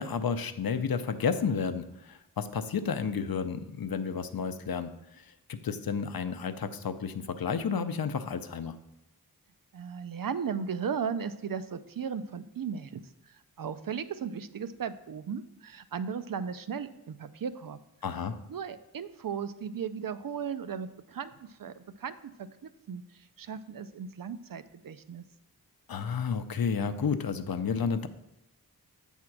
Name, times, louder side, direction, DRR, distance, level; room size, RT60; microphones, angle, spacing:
voice 1, 0.0-4.9 5.2-8.8 18.0-18.4 25.9-28.1, left 6 dB, 70° left, 10 dB, 0.6 m, -31 dB
voice 2, 9.7-17.8 18.5-25.2, right 7 dB, 65° right, 12 dB, 0.5 m, -36 dB
8.7 x 3.6 x 6.0 m, 0.90 s
wide cardioid pair, 75°, 37 cm